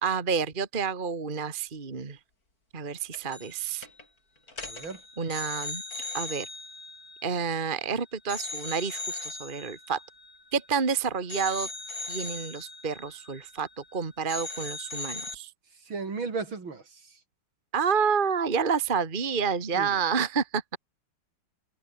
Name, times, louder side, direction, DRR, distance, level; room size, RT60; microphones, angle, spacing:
voice 1, 0.0-2.2 2.7-3.9 5.2-5.8 6.1-6.5 7.2-10.0 10.5-11.7 12.1-15.5 17.7-20.8, right 6 dB, 25° right, 1.8 m, -29 dB
sound 1, 3.1-3.6 3.8-4.0 4.5-7.9 8.3-10.9 11.3-14.0 14.3-15.4, left 2 dB, 40° left, 5.6 m, -39 dB
voice 2, 4.6-5.0 15.9-17.1 19.7-20.0, right 4 dB, 65° right, 4.3 m, -35 dB
open air
omnidirectional pair, 2.3 m